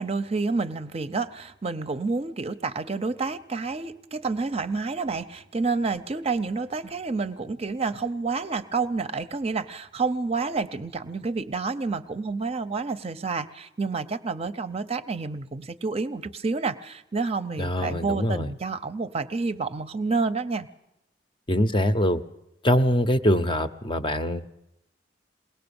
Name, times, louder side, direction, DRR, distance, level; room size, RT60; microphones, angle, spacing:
voice 1, 0.0-20.7, right 4 dB, 35° right, 11 dB, 0.6 m, -29 dB
voice 2, 17.6-18.5 21.5-22.2 22.6-24.5, left 1 dB, 25° left, 10 dB, 0.7 m, -23 dB
21.5 x 18.0 x 7.0 m, 0.89 s
head